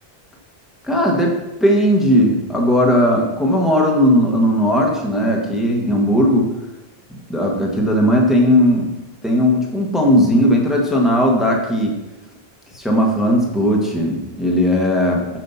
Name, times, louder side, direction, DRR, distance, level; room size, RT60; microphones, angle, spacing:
voice 1, 0.9-1.3 1.6-6.5 7.3-8.9 9.2-11.9 12.7-15.4, equal, ahead, 0 dB, 1.4 m, -17 dB
7.8 x 6.4 x 5.7 m, 0.98 s
omnidirectional pair, 1.1 m